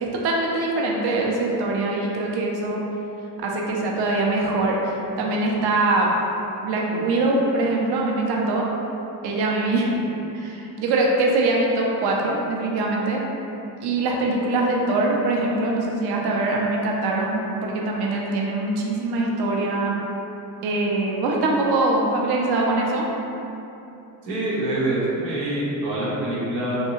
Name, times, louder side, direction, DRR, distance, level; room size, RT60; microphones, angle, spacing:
voice 1, 0.0-2.8 3.4-6.1 6.6-8.7 9.2-10.1 10.3-13.2 13.8-20.0 20.6-23.1, right 2 dB, 55° right, -2 dB, 0.6 m, -23 dB
voice 2, 24.2-26.8, right 1 dB, 80° right, -7 dB, 0.9 m, -25 dB
2.7 x 2.2 x 2.9 m, 2.9 s
supercardioid pair, 65°, 48 cm